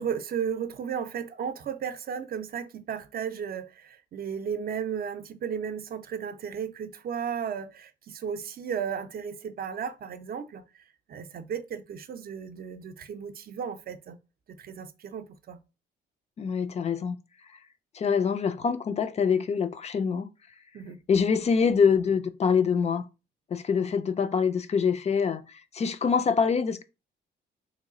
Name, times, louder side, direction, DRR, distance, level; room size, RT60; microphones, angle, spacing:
voice 1, 0.0-10.6 11.1-14.2 14.6-15.6 20.7-21.0, right 7 dB, 50° right, 0.5 m, -34 dB
voice 2, 16.4-17.2 17.9-20.3 21.1-23.1 23.5-26.8, left 6 dB, 35° left, 0.4 m, -25 dB
3.1 x 2.3 x 3.8 m
cardioid pair, 90°, 20 cm